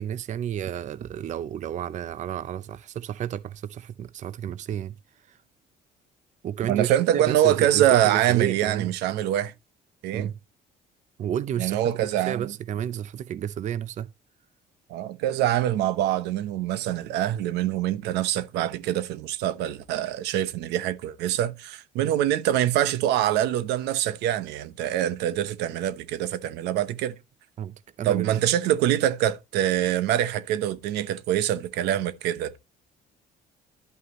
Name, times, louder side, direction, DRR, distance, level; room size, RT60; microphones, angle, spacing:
voice 1, 0.0-5.4 6.4-8.9 10.1-10.3 11.2-11.8 12.1-14.1 22.0-22.1 27.6-28.4, right 10 dB, 45° right, 0.5 m, -31 dB
voice 2, 6.7-9.5 10.0-10.3 11.6-12.5 14.9-27.1 28.0-32.6, right 12 dB, 90° right, 0.9 m, -24 dB
11.5 x 5.6 x 3.0 m
cardioid pair, 110°, 17 cm